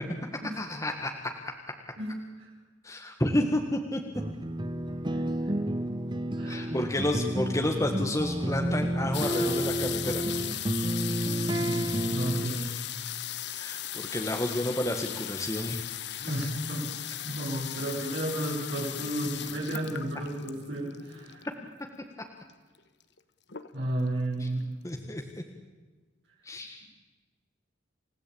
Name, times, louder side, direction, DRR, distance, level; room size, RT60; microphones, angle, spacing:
voice 1, 0.6-1.1 2.8-4.0 6.5-10.2 13.5-15.8 24.4-24.5 24.8-25.2 26.4-26.8, left 1 dB, 15° left, 3 dB, 1.7 m, -30 dB
sound 1, 4.1-12.5, right 1 dB, 25° right, 1.1 m, -30 dB
voice 2, 6.4-6.7 11.5-12.7 16.2-16.9 17.3-21.5 23.7-24.6, right 1 dB, 65° right, -5 dB, 5.8 m, -33 dB
sound 2, 9.1-21.7 22.5-22.6 22.8-23.2 23.5-24.1 24.6-24.7 24.9-25.0, left 12 dB, 60° left, 1.2 m, -37 dB
28.5 x 17.0 x 8.8 m, 1.3 s
head